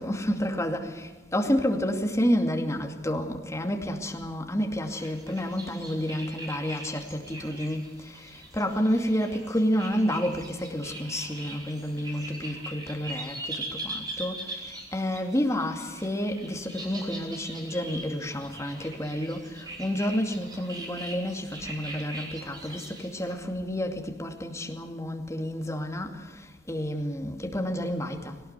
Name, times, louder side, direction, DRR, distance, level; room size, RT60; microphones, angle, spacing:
voice 1, 0.0-28.4, equal, 15° left, 2.4 m, -30 dB
sound 1, 4.8-23.3, right 2 dB, 25° right, 5.2 m, -41 dB
21.0 x 18.5 x 8.3 m
head